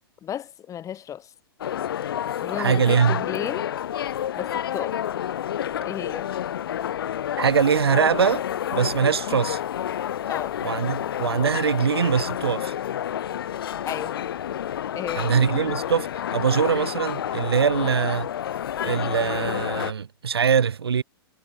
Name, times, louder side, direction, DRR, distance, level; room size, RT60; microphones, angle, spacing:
voice 1, 0.2-1.3 2.4-3.7 4.4-5.0 5.8-6.3 10.3-10.6 13.9-14.3 14.9-15.3 17.7-17.9, left 10 dB, 25° left, 4.0 m, -33 dB
sound 1, 1.6-19.9, left 10 dB, 65° left, 4.8 m, -29 dB
voice 2, 2.6-3.2 7.4-8.4 8.7-9.6 10.6-12.7 15.1-18.3 18.8-21.0, right 7 dB, 75° right, 4.7 m, -22 dB
figure-of-eight pair, 105°, 13 cm